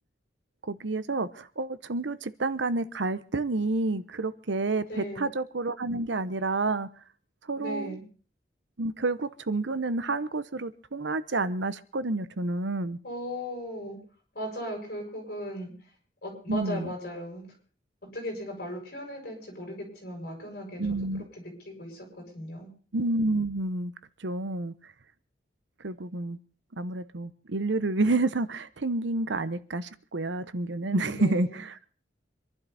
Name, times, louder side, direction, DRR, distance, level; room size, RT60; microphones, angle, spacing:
voice 1, 0.6-6.9 7.5-8.0 8.8-13.0 16.5-16.9 20.8-21.3 22.9-23.9 24.2-24.7 25.8-26.4 26.7-31.7, right 2 dB, 90° right, 0.9 m, -29 dB
voice 2, 4.9-5.3 7.6-8.0 13.0-14.0 14.3-15.7 16.2-17.4 18.1-21.0 21.4-22.7 30.8-31.6, equal, 55° left, 7.4 m, -37 dB
25.5 x 11.5 x 4.2 m
head